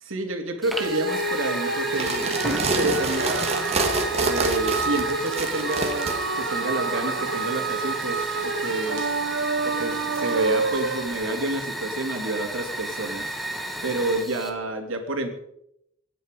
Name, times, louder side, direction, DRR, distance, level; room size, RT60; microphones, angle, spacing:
voice 1, 0.0-3.7 4.2-9.0 9.6-13.3 13.8-15.4, right 2 dB, 85° right, 4 dB, 2.9 m, -29 dB
Fire, 0.6-14.5, right 1 dB, ahead, 2.1 m, -33 dB
sound 1, 0.8-11.3, right 4 dB, 70° right, 1.2 m, -29 dB
sound 2, 1.9-6.1, right 3 dB, 30° right, 2.5 m, -27 dB
24.0 x 10.0 x 5.4 m, 0.78 s
head